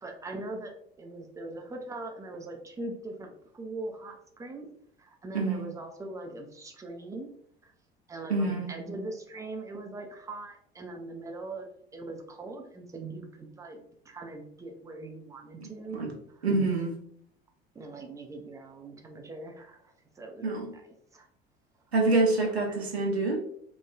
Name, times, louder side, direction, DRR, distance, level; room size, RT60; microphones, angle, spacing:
voice 1, 0.0-4.7 5.0-7.3 7.6-7.7 8.1-16.0 17.8-19.8 20.2-21.3 22.7-22.8, right 2 dB, 10° right, 3 dB, 0.3 m, -41 dB
voice 2, 5.3-5.7 8.3-8.7 15.6-16.1 16.4-16.9 20.4-20.7 21.9-23.4, right 3 dB, 90° right, 0 dB, 0.5 m, -27 dB
3.0 x 2.2 x 2.3 m, 0.67 s
figure-of-eight pair, 70°, 31 cm